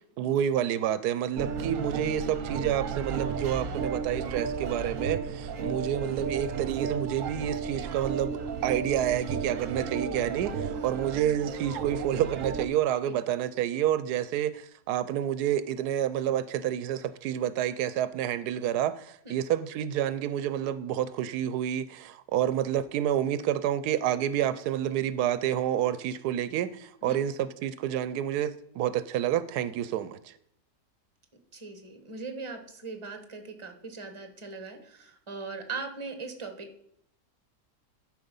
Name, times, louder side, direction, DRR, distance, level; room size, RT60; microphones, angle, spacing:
voice 1, 0.2-30.3, right 10 dB, 85° right, 15 dB, 1.1 m, -29 dB
sound 1, 1.4-12.7, right 5 dB, 60° right, 1.2 m, -33 dB
voice 2, 31.5-36.8, right 4 dB, 20° right, 6 dB, 1.2 m, -40 dB
11.5 x 5.1 x 5.4 m, 0.74 s
omnidirectional pair, 1.6 m